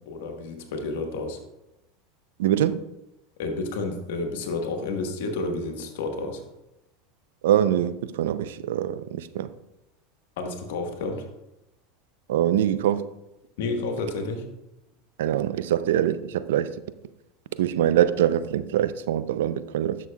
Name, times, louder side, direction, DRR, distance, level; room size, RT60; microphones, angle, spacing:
voice 1, 0.0-1.4 3.4-6.4 10.4-11.3 13.6-14.5, left 3 dB, 75° left, 1.3 m, -30 dB
voice 2, 2.4-2.8 7.4-9.5 12.3-13.0 15.2-16.7 17.6-20.0, right 11 dB, 80° right, 0.4 m, -23 dB
11.0 x 6.3 x 2.3 m
hypercardioid pair, 95°, 0 cm